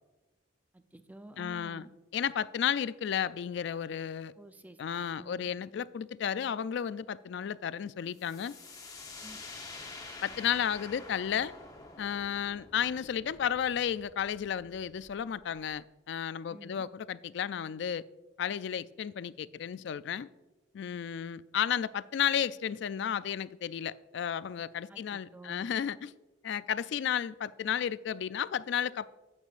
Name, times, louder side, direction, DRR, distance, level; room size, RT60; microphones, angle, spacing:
voice 1, 0.7-1.9 4.4-4.8 5.2-5.5 9.2-9.4 16.5-16.8 24.9-25.7, right 1 dB, 10° right, 9 dB, 0.5 m, -50 dB
voice 2, 1.4-1.9 2.1-4.3 4.8-8.6 10.2-11.5 12.0-18.0 18.4-20.3 20.7-26.1 26.4-29.1, left 8 dB, 60° left, 17 dB, 0.3 m, -33 dB
sound 1, 8.1-15.7, left 3 dB, 20° left, 0.9 m, -48 dB
11.5 x 8.9 x 2.5 m, 1.1 s
head